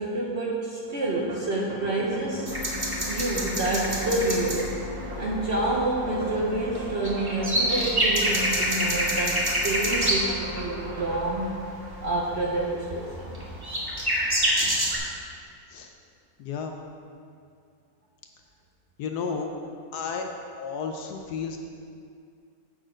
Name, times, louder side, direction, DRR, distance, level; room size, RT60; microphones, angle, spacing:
voice 1, 0.0-2.5 3.1-4.6 5.1-11.5 12.0-13.4 14.6-14.8, right 2 dB, 50° right, -3 dB, 0.8 m, -28 dB
sound 1, 0.9-12.6, right 1 dB, 35° right, 1.4 m, -38 dB
sound 2, 2.5-15.0, equal, 15° right, 1.0 m, -28 dB
voice 2, 16.4-16.8 19.0-19.5 19.9-20.3 20.6-21.6, left 5 dB, 70° left, 4 dB, 1.0 m, -32 dB
7.7 x 6.3 x 5.0 m, 2.4 s
omnidirectional pair, 2.0 m